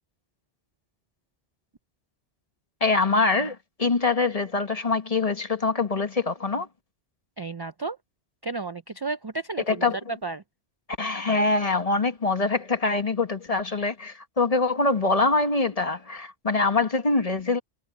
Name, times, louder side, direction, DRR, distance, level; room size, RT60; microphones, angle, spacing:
voice 1, 2.8-6.7 9.7-10.0 11.0-17.6, left 3 dB, 35° left, 1.3 m, -24 dB
voice 2, 7.4-8.0 8.4-10.4, right 3 dB, 40° right, 0.3 m, -32 dB
omnidirectional pair, 1.1 m